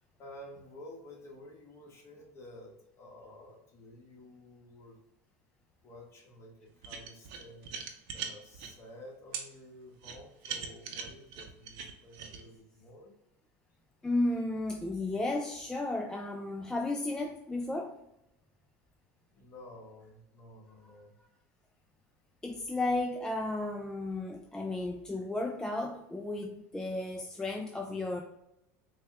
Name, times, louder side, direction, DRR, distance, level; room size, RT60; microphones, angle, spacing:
voice 1, 0.0-5.0 5.8-7.8 8.1-13.1 19.3-21.2, left 1 dB, 35° left, -1 dB, 1.3 m, -51 dB
sound 1, 6.8-8.7 9.3-9.5 10.0-12.4, right 7 dB, 65° right, 0.7 m, -40 dB
voice 2, 14.0-18.0 22.4-28.2, left 2 dB, 10° left, 2 dB, 0.3 m, -33 dB
4.1 x 2.3 x 3.4 m, 0.84 s
supercardioid pair, 110°, 9 cm